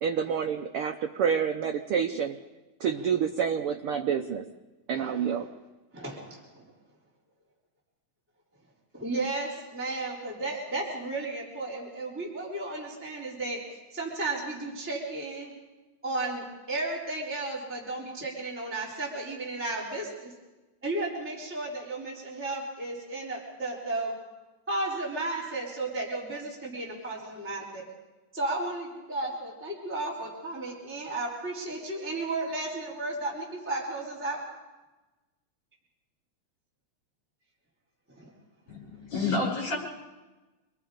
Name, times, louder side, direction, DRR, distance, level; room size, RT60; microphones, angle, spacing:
voice 1, 0.0-2.4 2.8-4.5 4.9-5.5, right 7 dB, 85° right, 5 dB, 1.2 m, -28 dB
voice 2, 4.9-5.3 5.9-6.6 8.9-13.6 13.9-15.5 16.0-20.3 20.8-24.1 24.7-27.8 28.3-34.5 38.2-38.3, right 2 dB, 5° right, -5 dB, 3.8 m, -34 dB
voice 3, 38.7-39.8, left 3 dB, 55° left, -2 dB, 7.5 m, -29 dB
27.5 x 20.5 x 5.1 m, 1.1 s
omnidirectional pair, 3.5 m